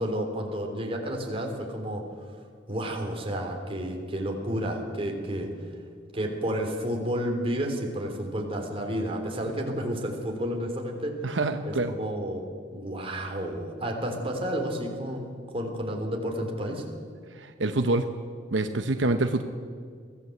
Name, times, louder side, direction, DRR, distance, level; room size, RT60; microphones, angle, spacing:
voice 1, 0.0-2.3 2.7-5.5 6.1-11.4 11.7-16.8, equal, 30° right, 2 dB, 3.6 m, -31 dB
voice 2, 11.2-11.9 17.3-18.1 18.5-19.4, right 2 dB, 80° right, 7 dB, 1.0 m, -26 dB
23.5 x 15.5 x 8.0 m, 2.1 s
head